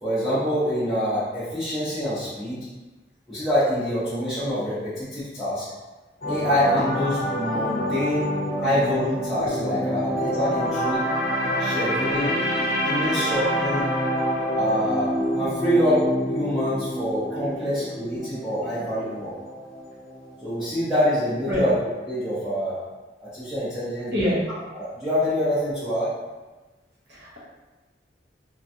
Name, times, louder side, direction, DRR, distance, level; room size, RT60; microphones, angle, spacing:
voice 1, 0.0-2.7 3.3-5.6 6.3-8.3 8.6-11.0 11.6-12.4 12.8-13.9 14.5-19.3 20.4-21.7 22.1-22.8 23.2-24.3 24.7-26.1, equal, ahead, -14 dB, 0.7 m, -26 dB
sound 1, 6.2-20.4 20.7-20.9, equal, 50° left, 0.6 m, -27 dB
voice 2, 12.2-12.8 17.3-17.6 18.6-19.1 21.5-21.6 24.1-24.4 27.1-27.4, equal, 65° right, -6 dB, 1.0 m, -29 dB
3.2 x 2.3 x 2.6 m, 1.2 s
head